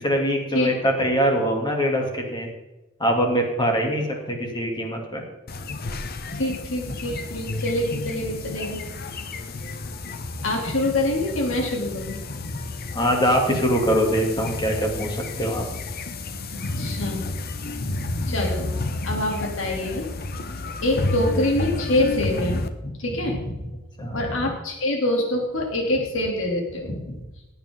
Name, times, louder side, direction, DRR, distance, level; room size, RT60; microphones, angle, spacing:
voice 1, 0.0-2.5 3.0-5.2 12.9-15.6 24.0-24.2, equal, 20° left, 1 dB, 2.8 m, -23 dB
sound 1, 5.5-22.7, left 2 dB, 50° left, 0.9 m, -31 dB
voice 2, 6.4-8.8 10.4-12.2 16.5-17.2 17.6-18.7 19.0-20.1 20.8-23.7 24.0-27.2, left 1 dB, 70° left, 0 dB, 3.0 m, -26 dB
17.0 x 8.9 x 3.8 m, 1.0 s
head